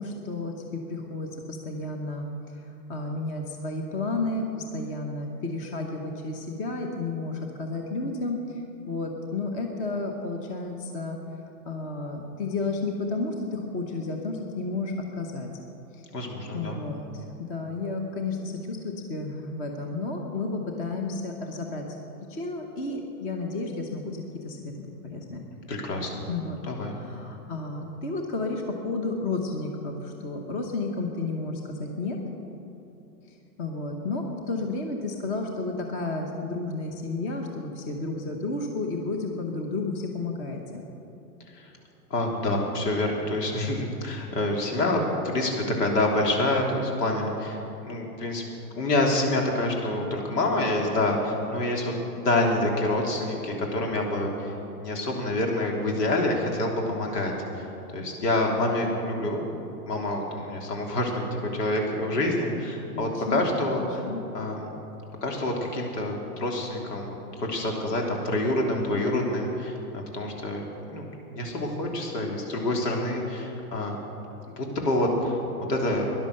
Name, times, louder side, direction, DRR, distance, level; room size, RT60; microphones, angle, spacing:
voice 1, 0.0-2.6 2.9-11.2 11.6-15.5 15.9-16.0 16.5-21.9 22.3-25.4 26.3-26.6 26.9-32.2 33.6-40.8 62.9-63.5 63.8-64.2, left 3 dB, 15° left, 2 dB, 0.9 m, -32 dB
voice 2, 16.1-16.8 25.7-26.2 26.6-27.0 41.5-41.7 42.1-47.6 47.8-48.4 48.7-57.6 57.9-59.4 59.9-64.0 64.3-64.7 65.2-70.6 70.9-74.0 74.6-76.0, left 1 dB, 75° left, 0 dB, 3.4 m, -27 dB
16.5 x 11.0 x 6.5 m, 3.0 s
hypercardioid pair, 155°, 49 cm